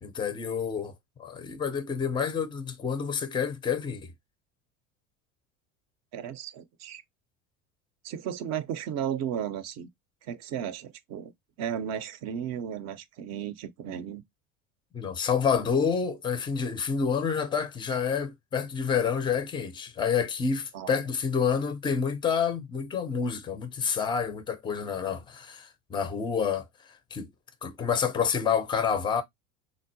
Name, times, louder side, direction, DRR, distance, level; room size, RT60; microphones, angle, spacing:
voice 1, 0.0-0.9 1.2-4.1 14.9-26.6 27.1-27.3 27.6-29.2, left 6 dB, 15° left, 0.4 m, -28 dB
voice 2, 6.1-7.0 8.0-9.9 10.2-11.3 11.6-14.2 20.7-21.0, right 9 dB, 45° right, 0.5 m, -34 dB
3.6 x 2.1 x 2.5 m
hypercardioid pair, 75°, 39 cm